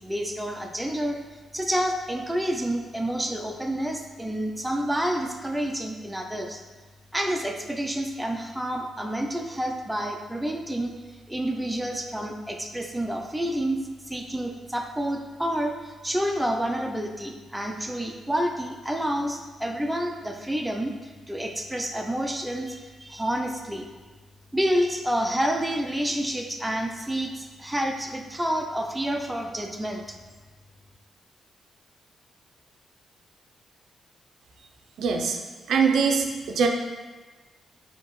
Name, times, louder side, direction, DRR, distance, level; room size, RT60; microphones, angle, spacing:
voice 1, 0.0-1.2 1.5-6.6 7.1-10.9 11.3-13.8 14.1-23.8 24.5-30.2, equal, 5° right, 2 dB, 0.3 m, -29 dB
voice 2, 35.0-35.4 35.7-36.7, right 5 dB, 75° right, 3 dB, 0.4 m, -22 dB
4.5 x 2.7 x 3.0 m, 1.3 s
cardioid pair, 140°, 0 cm